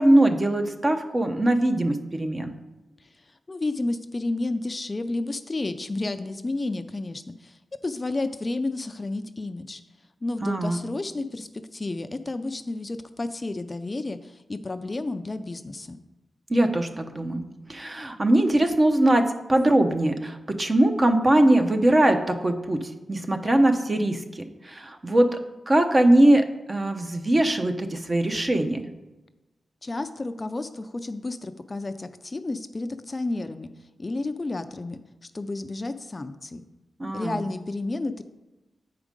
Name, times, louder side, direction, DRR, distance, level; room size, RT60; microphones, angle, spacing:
voice 1, 0.0-2.5 10.4-10.8 16.5-17.4 17.7-19.2 19.5-22.8 23.1-25.3 25.7-28.8 37.0-37.4, right 1 dB, 30° right, 6 dB, 0.8 m, -21 dB
voice 2, 3.0-9.8 10.2-16.0 29.8-33.7 34.0-36.6 37.1-38.2, left 2 dB, 30° left, 9 dB, 0.4 m, -31 dB
8.1 x 4.9 x 5.2 m, 1.1 s
cardioid pair, 85°, 0 cm